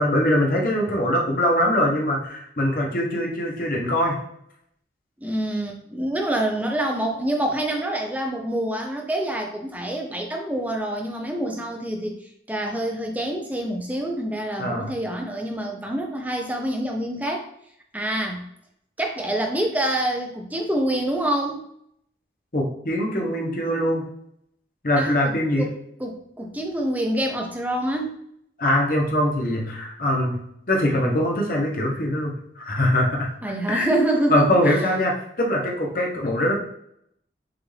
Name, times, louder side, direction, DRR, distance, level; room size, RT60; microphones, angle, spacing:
voice 1, 0.0-4.2 14.6-14.9 22.5-24.1 24.8-25.7 28.6-33.3 33.7-33.9 34.3-36.5, left 1 dB, 50° left, -1 dB, 1.0 m, -22 dB
voice 2, 5.2-12.1 12.5-17.5 17.9-18.4 19.0-21.7 25.0-25.7 26.0-28.2 33.4-34.9, right 1 dB, 10° right, 1 dB, 0.6 m, -26 dB
6.0 x 2.6 x 3.3 m, 0.72 s
head